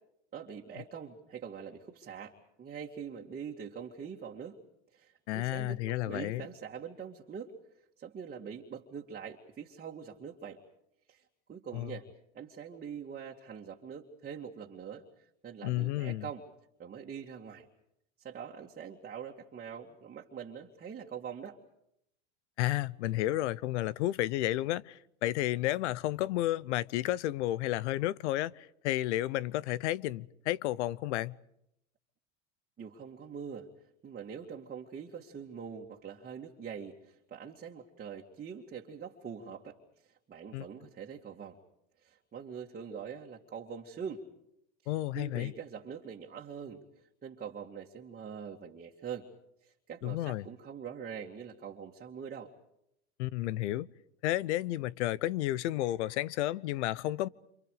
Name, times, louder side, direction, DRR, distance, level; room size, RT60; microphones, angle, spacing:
voice 1, 0.3-4.6 4.9-7.5 8.0-10.6 11.1-11.2 11.5-12.1 12.3-16.4 16.8-17.7 18.2-21.6 32.8-33.7 34.0-39.8 40.0-41.6 42.0-44.3 44.8-46.8 47.2-49.3 49.6-52.5, right 7 dB, 25° right, 2.4 m, -44 dB
voice 2, 5.3-6.4 11.7-12.0 15.6-16.3 22.6-31.4 40.5-40.6 44.9-45.5 50.0-50.5 53.2-53.9 54.2-57.3, left 15 dB, 75° left, 0.9 m, -32 dB
28.5 x 28.5 x 5.0 m
supercardioid pair, 110°, 35 cm